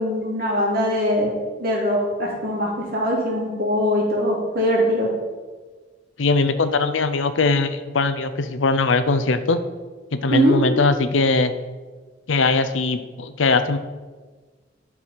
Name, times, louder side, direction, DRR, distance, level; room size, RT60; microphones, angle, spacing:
voice 1, 0.0-1.3 1.6-5.1 10.3-10.5, equal, 50° right, -3 dB, 2.7 m, -21 dB
voice 2, 6.2-9.6 10.1-11.5 12.3-13.8, left 3 dB, 85° left, 11 dB, 0.6 m, -20 dB
11.0 x 4.7 x 5.8 m, 1.4 s
head